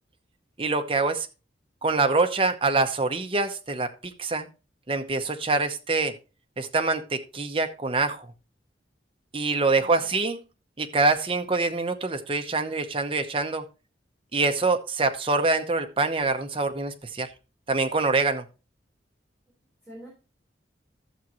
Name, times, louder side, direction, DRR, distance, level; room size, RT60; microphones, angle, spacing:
voice 1, 0.6-1.3 1.8-4.5 4.9-6.2 6.6-8.3 9.3-10.4 10.8-13.6 14.3-17.3 17.7-18.4, right 3 dB, 30° right, 7 dB, 0.9 m, -25 dB
voice 2, 9.5-10.2 19.8-20.1, equal, ahead, -6 dB, 3.8 m, -47 dB
12.0 x 7.3 x 3.0 m, 0.31 s
head